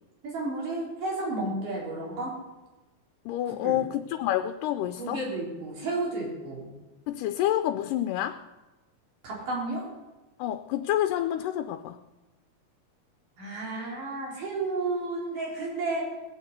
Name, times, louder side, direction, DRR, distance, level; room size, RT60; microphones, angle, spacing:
voice 1, 0.2-2.3 3.6-3.8 5.0-6.7 9.2-9.9 13.4-16.1, right 2 dB, 75° right, -4 dB, 5.6 m, -32 dB
voice 2, 3.3-5.2 7.1-8.4 10.4-12.0, left 12 dB, 85° left, 8 dB, 2.2 m, -28 dB
19.5 x 6.6 x 8.1 m, 1.1 s
omnidirectional pair, 3.8 m